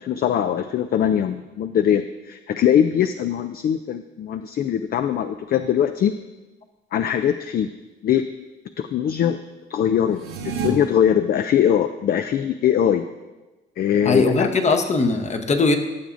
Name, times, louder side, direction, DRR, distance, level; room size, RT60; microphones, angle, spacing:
voice 1, 0.0-6.1 6.9-7.7 8.0-8.3 8.8-9.4 9.7-13.1 13.8-14.5, left 9 dB, 50° left, 9 dB, 0.4 m, -21 dB
sound 1, 10.1-10.7, right 6 dB, 80° right, 1.6 m, -29 dB
voice 2, 14.0-15.8, left 3 dB, 35° left, 7 dB, 0.9 m, -19 dB
14.0 x 6.9 x 2.6 m, 1.2 s
cardioid pair, 90°, 20 cm